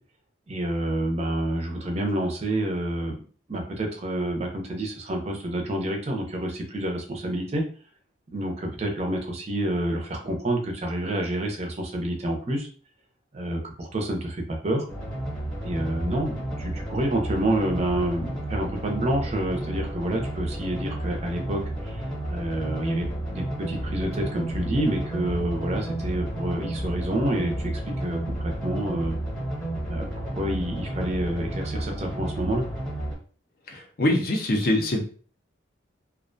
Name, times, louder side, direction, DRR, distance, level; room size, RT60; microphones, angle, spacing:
voice 1, 0.5-3.2 3.5-7.6 8.3-12.7 13.3-14.8 15.6-27.7 28.0-29.2 29.9-32.6, right 1 dB, 35° right, 2 dB, 0.5 m, -28 dB
sound 1, 14.9-33.1, right 1 dB, 5° left, 0.8 m, -32 dB
voice 2, 33.7-35.0, left 1 dB, 50° left, 2 dB, 0.5 m, -24 dB
2.4 x 2.1 x 2.5 m, 0.41 s
head